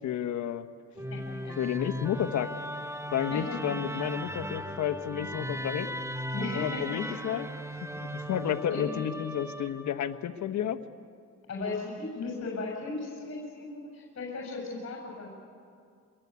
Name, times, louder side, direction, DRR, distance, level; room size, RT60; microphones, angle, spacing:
voice 1, 0.0-0.7 1.6-2.5 3.1-5.9 6.5-7.5 8.0-10.8, left 10 dB, 70° left, 7 dB, 1.2 m, -31 dB
Musical instrument, 1.0-10.2, equal, 10° right, 1.0 m, -37 dB
voice 2, 1.1-1.6 3.3-3.6 3.9-4.0 6.3-7.2 8.7-8.9 11.5-15.3, left 3 dB, 45° left, -1 dB, 7.3 m, -36 dB
24.0 x 22.5 x 8.3 m, 2.3 s
cardioid pair, 90°, 30 cm